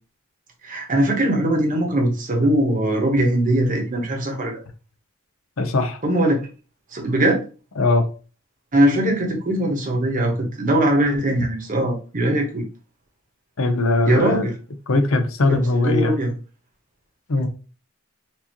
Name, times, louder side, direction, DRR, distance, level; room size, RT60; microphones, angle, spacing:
voice 1, 0.6-4.6 6.0-6.5 6.9-7.4 8.7-12.7 14.1-14.5 15.5-16.3, right 1 dB, 40° right, 2 dB, 1.1 m, -21 dB
voice 2, 5.6-6.0 7.8-8.1 13.6-14.5 14.9-16.1 17.3-17.5, left 2 dB, 70° left, 7 dB, 0.7 m, -20 dB
4.5 x 2.8 x 2.9 m, 0.35 s
head